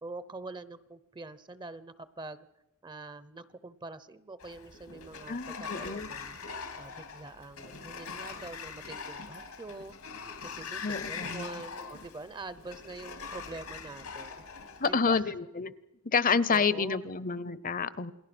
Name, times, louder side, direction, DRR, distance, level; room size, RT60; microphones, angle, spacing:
voice 1, 0.0-2.5 2.8-6.4 6.8-9.9 10.4-14.4 14.9-15.3 16.5-17.2, right 3 dB, 20° right, 15 dB, 0.7 m, -45 dB
Sliding door, 4.4-14.9, left 5 dB, 90° left, 2.8 m, -42 dB
voice 2, 5.3-6.1 10.8-11.5 14.8-15.7 16.0-18.1, left 5 dB, 40° left, 17 dB, 0.8 m, -29 dB
28.5 x 20.5 x 6.1 m, 0.93 s
head